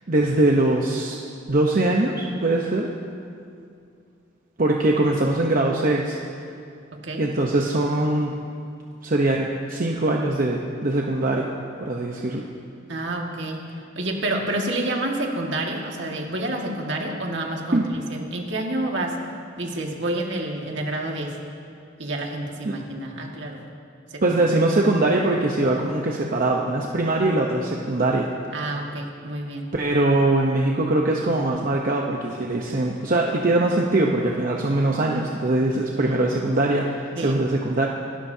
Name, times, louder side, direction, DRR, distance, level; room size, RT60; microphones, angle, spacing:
voice 1, 0.1-1.2 1.5-2.9 4.6-6.2 7.2-8.4 9.0-11.5 11.8-12.4 17.7-17.8 22.6-22.8 24.2-28.3 29.7-37.9, right 2 dB, 45° right, -1 dB, 0.9 m, -22 dB
voice 2, 12.9-13.7 14.0-19.2 19.6-21.4 22.0-23.6 24.1-24.4 28.5-29.7 36.0-36.2 37.2-37.4, right 1 dB, 65° right, 0 dB, 1.9 m, -29 dB
27.0 x 13.0 x 2.8 m, 2.4 s
head